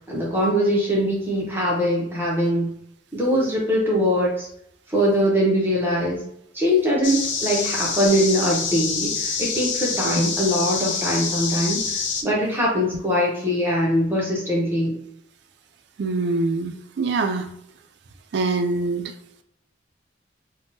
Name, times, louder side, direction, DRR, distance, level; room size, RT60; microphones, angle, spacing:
voice 1, 0.1-2.7 3.1-4.5 4.9-6.2 6.5-14.9, equal, 10° right, -5 dB, 0.7 m, -22 dB
sound 1, 7.0-12.2, left 5 dB, 75° left, 0.5 m, -26 dB
voice 2, 16.0-17.5 18.3-19.1, right 3 dB, 60° right, 7 dB, 0.3 m, -24 dB
3.5 x 2.1 x 2.6 m, 0.73 s
head